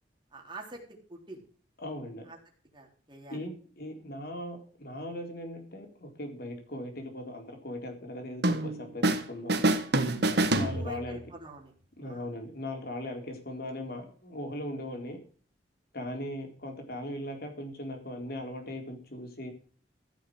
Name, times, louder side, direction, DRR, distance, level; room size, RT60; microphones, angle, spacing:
voice 1, 0.3-1.4 2.3-2.4 2.7-3.4 10.7-11.7 12.0-12.3, right 2 dB, 25° right, 1 dB, 3.8 m, -46 dB
voice 2, 1.8-2.3 3.3-9.6 10.5-11.2 12.0-15.2 15.9-19.5, left 1 dB, 55° left, 4 dB, 4.0 m, -39 dB
sound 1, 8.4-9.2 9.5-11.3, right 2 dB, 65° right, 1.6 m, -26 dB
15.0 x 7.0 x 6.3 m, 0.43 s
head